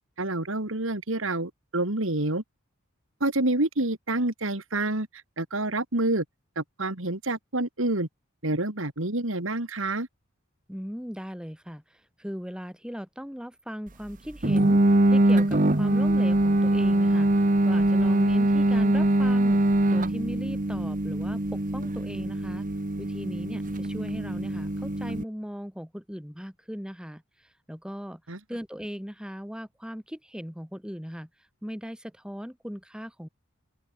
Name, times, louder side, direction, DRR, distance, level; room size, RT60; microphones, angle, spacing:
voice 1, 0.2-2.4 3.2-5.1 5.4-6.2 6.6-8.1 8.4-10.1 28.3-28.4, right 2 dB, 65° right, 2.7 m, -28 dB
voice 2, 10.7-17.3 17.6-19.6 19.9-22.7 23.0-28.2 28.5-31.3 31.6-33.3, equal, 5° right, 2.9 m, -38 dB
sound 1, 14.4-25.2, right 1 dB, 40° right, 1.3 m, -23 dB
open air
head